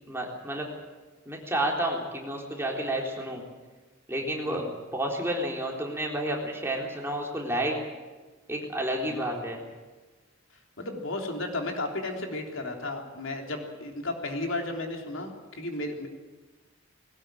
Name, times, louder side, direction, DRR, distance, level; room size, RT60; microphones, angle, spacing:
voice 1, 0.1-0.7 1.3-3.4 4.1-4.7 4.9-7.8 8.5-9.6, right 1 dB, 10° right, -1 dB, 3.8 m, -30 dB
voice 2, 9.1-9.5 10.8-16.1, left 2 dB, 75° left, 2 dB, 3.4 m, -34 dB
20.5 x 18.0 x 9.1 m, 1.3 s
head